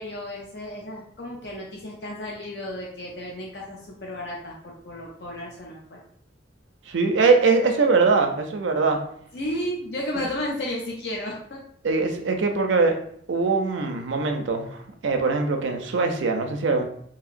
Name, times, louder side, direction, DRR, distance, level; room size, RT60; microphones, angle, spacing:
voice 1, 0.0-6.0 9.3-11.6, left 1 dB, 60° left, -2 dB, 0.5 m, -33 dB
voice 2, 6.9-9.0 11.8-13.0 13.3-16.8, right 4 dB, 80° right, 5 dB, 0.4 m, -22 dB
2.8 x 2.7 x 2.5 m, 0.64 s
head